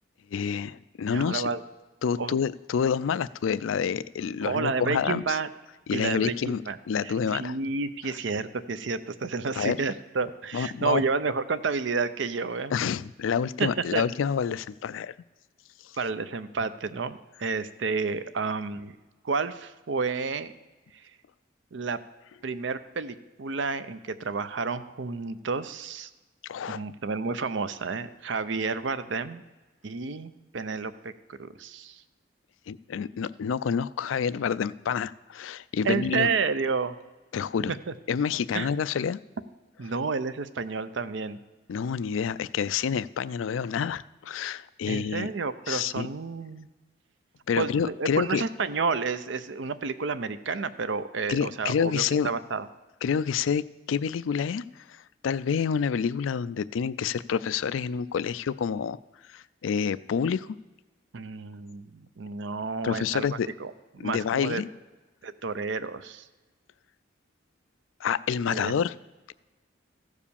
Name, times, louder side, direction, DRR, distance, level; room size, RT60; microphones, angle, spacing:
voice 1, 0.3-1.5 2.0-5.4 5.9-6.6 6.9-7.6 9.6-9.8 10.5-11.0 12.7-15.1 26.5-26.8 32.7-36.3 37.3-37.7 38.1-39.2 41.7-45.3 45.7-46.1 47.5-48.4 51.3-52.3 53.0-59.0 59.3-60.5 62.8-63.5 64.0-64.7 68.0-68.9, left 7 dB, 85° left, 16 dB, 0.4 m, -28 dB
voice 2, 1.1-1.6 2.2-2.4 4.4-5.5 5.9-12.7 13.6-14.0 15.9-19.0 19.2-20.5 20.9-21.1 21.7-22.0 22.4-26.1 26.7-29.4 29.8-32.0 35.8-37.0 37.7-37.9 38.5-38.7 39.8-41.4 44.8-46.7 47.6-52.7 61.1-63.3 63.6-64.6 65.2-66.3 68.5-68.7, right 4 dB, 70° right, 13 dB, 0.6 m, -30 dB
14.5 x 5.0 x 6.9 m, 1.2 s
head